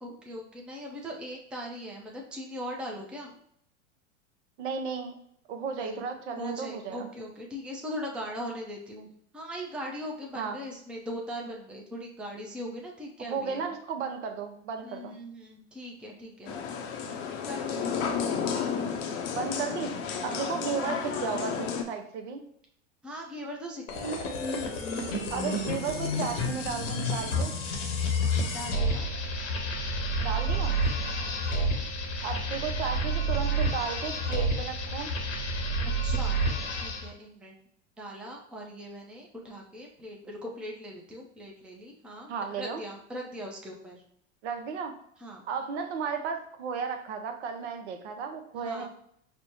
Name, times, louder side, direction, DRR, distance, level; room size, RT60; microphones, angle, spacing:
voice 1, 0.0-3.4 5.7-6.0 6.4-13.7 14.8-16.6 17.4-18.1 20.2-20.6 23.0-24.2 28.5-29.1 36.0-37.5 38.0-44.0 45.2-45.4 48.6-48.9, equal, 5° right, -1 dB, 0.5 m, -40 dB
voice 2, 4.6-5.1 5.5-7.1 10.4-10.6 13.3-15.2 19.3-20.0 20.2-22.5 25.3-27.5 30.2-30.8 32.2-35.1 42.3-42.8 44.4-44.9 45.5-48.9, right 6 dB, 65° right, 6 dB, 0.7 m, -34 dB
sound 1, 16.5-21.8, left 6 dB, 45° left, 0.6 m, -32 dB
sound 2, 23.9-37.1, equal, 80° left, 0.9 m, -29 dB
5.2 x 2.1 x 2.9 m, 0.68 s
hypercardioid pair, 95°, 37 cm